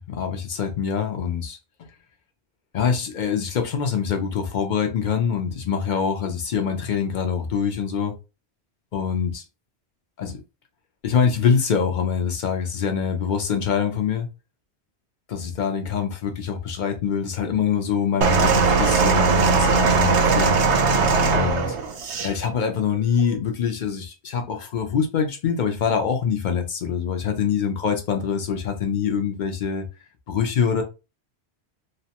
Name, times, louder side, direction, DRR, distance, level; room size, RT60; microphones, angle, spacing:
voice 1, 0.1-1.6 2.7-8.2 8.9-9.4 10.2-10.4 11.0-14.3 15.3-20.5 21.3-21.8 22.2-29.9 30.3-30.8, left 7 dB, 55° left, 0.6 m, -24 dB
sound 1, 18.2-22.3 23.2-23.3, right 4 dB, 90° right, 0.9 m, -19 dB
2.8 x 2.1 x 2.8 m
omnidirectional pair, 1.1 m